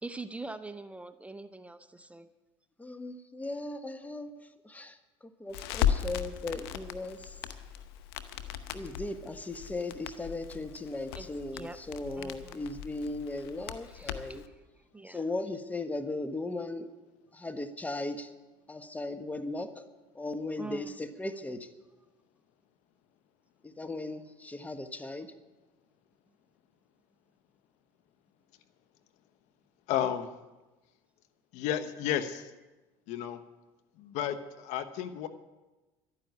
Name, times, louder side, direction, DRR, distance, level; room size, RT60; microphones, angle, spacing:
voice 1, 0.0-2.3 11.1-11.3 11.5-11.8 12.2-12.7 13.8-15.3 20.6-21.0, right 3 dB, 10° right, 11 dB, 0.7 m, -44 dB
voice 2, 2.8-4.3 4.6-5.0 5.4-7.4 8.7-14.4 15.1-16.9 17.3-18.3 18.7-19.8 20.1-21.7 23.6-25.3, left 2 dB, 10° left, 9 dB, 1.3 m, -37 dB
Crackle, 5.5-14.5, left 9 dB, 90° left, 0.9 m, -37 dB
voice 3, 29.9-30.3 31.5-32.5 33.1-33.4 34.0-35.3, left 10 dB, 70° left, 12 dB, 1.1 m, -32 dB
12.0 x 9.8 x 9.4 m, 1.1 s
supercardioid pair, 90°, 12 cm